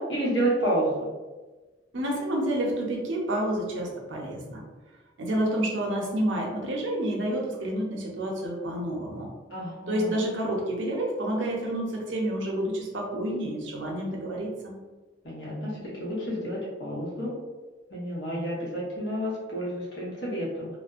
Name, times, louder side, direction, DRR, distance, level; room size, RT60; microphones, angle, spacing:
voice 1, 0.1-1.1 9.5-10.1 15.2-17.3 17.9-20.7, right 1 dB, 70° left, -6 dB, 1.0 m, -30 dB
voice 2, 1.9-4.6 5.2-9.3 9.9-14.8, right 1 dB, 85° right, -1 dB, 0.6 m, -29 dB
2.4 x 2.1 x 2.4 m, 1.2 s
head